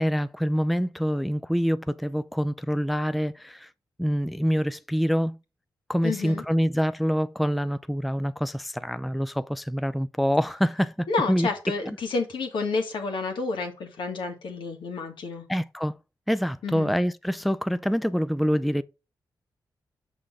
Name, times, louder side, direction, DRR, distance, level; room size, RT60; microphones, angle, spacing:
voice 1, 0.0-3.7 4.0-5.4 5.9-11.5 15.5-15.9 16.3-18.8, equal, ahead, 0.4 m, -26 dB
voice 2, 6.0-6.4 11.1-15.4 16.6-16.9, left 4 dB, 80° left, 1.8 m, -30 dB
6.4 x 5.8 x 3.6 m
cardioid pair, 60°, 8 cm